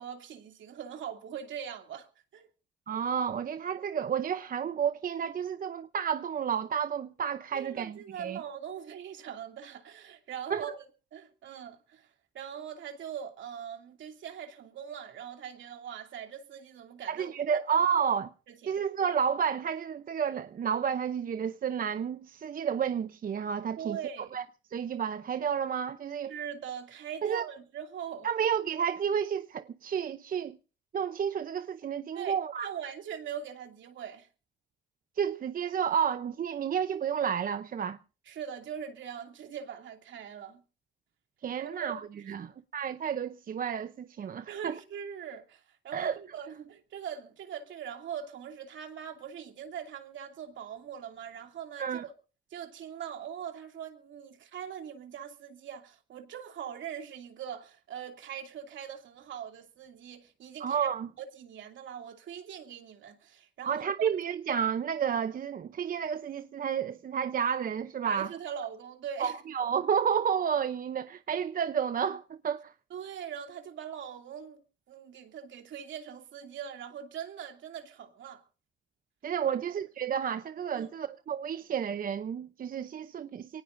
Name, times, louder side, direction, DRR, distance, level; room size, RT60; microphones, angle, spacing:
voice 1, 0.0-2.1 2.3-2.5 7.5-10.9 11.1-12.1 12.3-17.6 18.5-18.7 23.8-24.3 26.3-28.3 32.1-34.3 38.3-40.6 41.6-41.9 42.4-42.5 44.5-52.1 52.5-60.9 61.2-64.1 68.0-69.4 72.9-74.6 74.9-78.4 79.5-79.6 80.7-80.9, right 8 dB, 70° right, 2.7 m, -41 dB
voice 2, 2.9-8.4 10.5-10.7 17.1-18.3 18.7-24.0 24.3-24.4 24.7-26.3 27.2-27.4 28.2-30.6 30.9-32.7 35.2-38.0 41.4-42.0 42.3-44.8 45.9-46.2 51.8-52.0 60.6-61.1 63.6-68.3 69.2-72.7 79.2-83.6, right 7 dB, 45° right, 0.7 m, -31 dB
24.0 x 18.5 x 2.6 m
cardioid pair, 90°, 20 cm